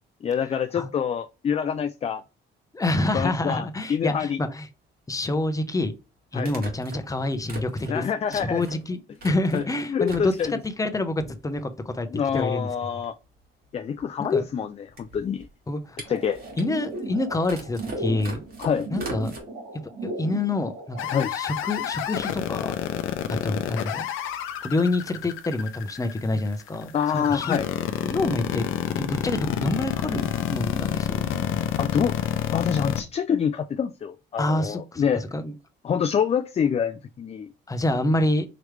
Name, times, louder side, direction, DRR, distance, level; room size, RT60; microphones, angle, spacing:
voice 1, 0.2-2.2 3.1-4.4 6.3-6.5 7.9-8.7 9.5-10.5 12.1-13.1 13.7-15.5 16.1-16.4 18.6-18.9 21.1-21.3 26.9-27.7 31.8-32.1 32.5-35.2 35.8-37.5, left 7 dB, 30° left, 0.4 m, -26 dB
voice 2, 2.7-4.7 5.1-5.9 6.3-8.0 8.3-12.1 12.3-12.7 14.3-14.4 15.7-16.0 16.6-18.4 18.9-19.3 20.0-21.0 21.3-22.7 23.3-24.1 24.6-27.6 28.0-28.7 29.0-31.3 34.4-35.0 35.3-35.5 37.7-38.5, left 2 dB, 15° left, 0.7 m, -27 dB
sound 1, 3.6-3.7 5.4-5.5 6.4-9.7 10.0-10.7 11.2-11.8 12.1-12.2 12.4-19.4, right 2 dB, 50° right, 1.9 m, -42 dB
sound 2, 16.1-21.1, right 2 dB, 90° right, 2.3 m, -36 dB
sound 3, 21.0-33.0, left 11 dB, 85° left, 0.6 m, -28 dB
5.0 x 3.1 x 3.2 m
cardioid pair, 90°, 20 cm